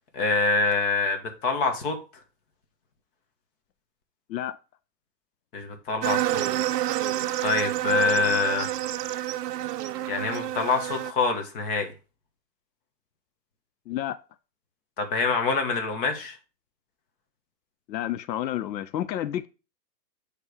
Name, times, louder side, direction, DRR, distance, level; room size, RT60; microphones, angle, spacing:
voice 1, 0.1-1.9 5.5-6.5 7.4-8.8 10.1-11.9 15.0-16.4, left 4 dB, 35° left, 1.3 m, -25 dB
sound 1, 6.0-11.1, right 13 dB, 70° right, 0.6 m, -28 dB
voice 2, 13.9-14.2 17.9-19.5, left 12 dB, 85° left, 0.6 m, -30 dB
7.3 x 3.4 x 4.8 m
hypercardioid pair, 155°, 49 cm